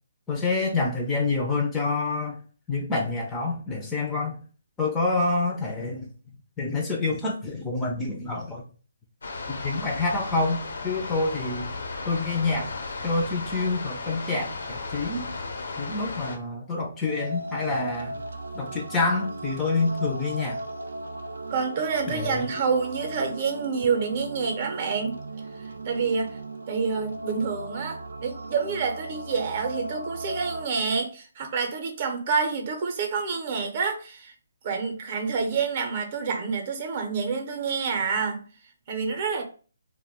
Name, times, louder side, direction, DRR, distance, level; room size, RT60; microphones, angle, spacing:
voice 1, 0.3-2.4 2.7-4.4 4.8-6.1 6.6-8.6 9.5-11.7 12.1-12.7 13.0-15.3 15.8-18.2 18.6-20.6 22.1-22.5, left 3 dB, 10° left, 0.4 m, -27 dB
sound 1, 9.2-16.4, left 3 dB, 70° left, 0.6 m, -35 dB
sound 2, 17.0-30.7, right 2 dB, 90° right, 0.4 m, -37 dB
voice 2, 21.5-25.2 25.6-26.4 26.7-34.3 34.6-38.4 38.9-39.4, right 5 dB, 40° right, 0.6 m, -28 dB
2.2 x 2.1 x 3.5 m
hypercardioid pair, 155°, 0 cm